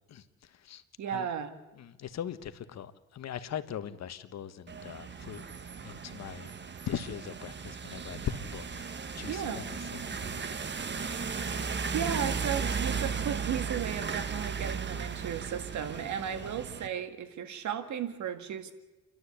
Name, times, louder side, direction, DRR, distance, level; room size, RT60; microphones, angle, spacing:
voice 1, 1.0-1.5 9.3-9.7 11.0-11.4 11.9-18.7, right 8 dB, 70° right, 2.0 m, -35 dB
voice 2, 1.8-5.5 5.8-6.5 6.9-9.6 10.1-10.5 16.3-16.4, left 9 dB, 60° left, 1.4 m, -40 dB
sound 1, 4.7-16.9, right 5 dB, 35° right, 1.4 m, -36 dB
30.0 x 12.0 x 8.3 m
cardioid pair, 90°, 30 cm